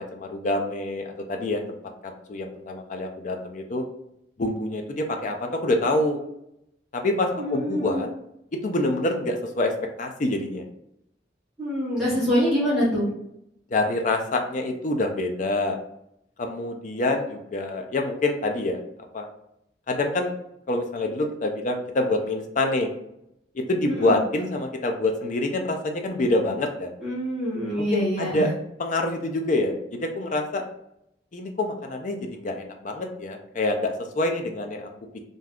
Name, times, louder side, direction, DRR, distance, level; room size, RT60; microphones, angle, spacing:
voice 1, 0.0-1.8 2.0-3.8 4.4-6.2 6.9-8.1 8.6-9.7 10.0-10.6 13.7-15.8 16.4-18.8 19.1-19.3 19.9-20.4 20.7-22.9 23.5-26.9 27.9-28.5 28.8-30.6 31.3-34.9, left 2 dB, 40° left, 4 dB, 0.4 m, -26 dB
voice 2, 7.4-8.0 11.6-13.1 23.9-24.2 27.0-28.5, equal, ahead, -9 dB, 0.9 m, -25 dB
2.6 x 2.3 x 3.4 m, 0.79 s
head